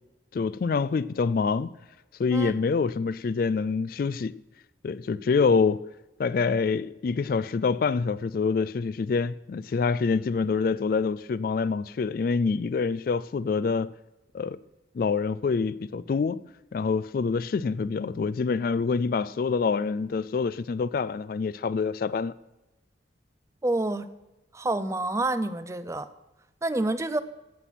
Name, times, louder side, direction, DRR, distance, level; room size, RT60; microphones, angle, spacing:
voice 1, 0.3-1.7 2.2-4.4 4.8-5.8 6.2-13.9 14.3-14.6 14.9-16.4 16.7-22.3, left 5 dB, 50° left, 0.3 m, -26 dB
voice 2, 23.6-24.1 24.5-26.1 26.6-27.2, right 2 dB, 15° right, 0.4 m, -28 dB
16.0 x 5.8 x 6.1 m
head